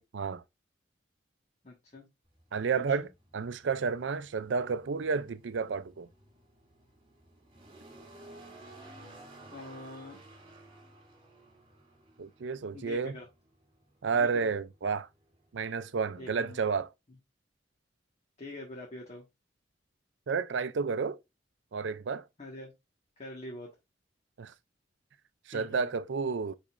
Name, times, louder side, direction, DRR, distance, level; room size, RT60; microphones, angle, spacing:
voice 1, 1.6-2.0 2.7-3.1 9.5-10.2 12.7-13.3 14.1-14.5 16.2-16.6 17.1-17.2 18.4-19.2 22.4-22.7 23.2-23.7 25.5-25.9, left 1 dB, 40° left, 1.6 m, -45 dB
sound 1, 2.2-16.7, right 2 dB, 30° right, 3.0 m, -55 dB
voice 2, 2.5-3.1 3.3-6.1 12.2-13.2 14.0-15.1 15.5-16.9 20.3-21.2 21.7-22.3 24.4-24.5 25.5-26.6, right 5 dB, 75° right, 0.5 m, -31 dB
10.0 x 4.1 x 2.5 m
head